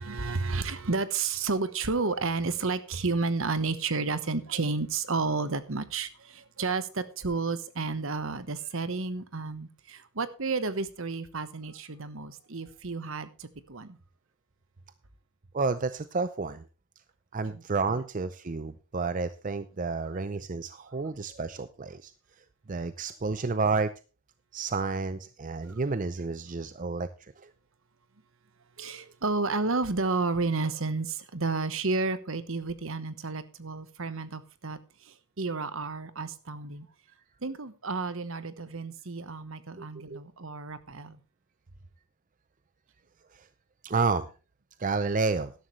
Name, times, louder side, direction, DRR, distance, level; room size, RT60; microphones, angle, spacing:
voice 1, 0.0-14.0 17.5-17.6 20.1-20.2 28.8-36.9 37.4-41.2, right 3 dB, 60° right, 1.1 m, -31 dB
voice 2, 15.5-16.6 17.3-22.1 22.7-23.9 24.5-27.5 39.8-40.2 43.3-43.5 43.8-44.3 44.8-45.5, right 4 dB, 35° right, 0.5 m, -30 dB
13.0 x 11.5 x 3.2 m
head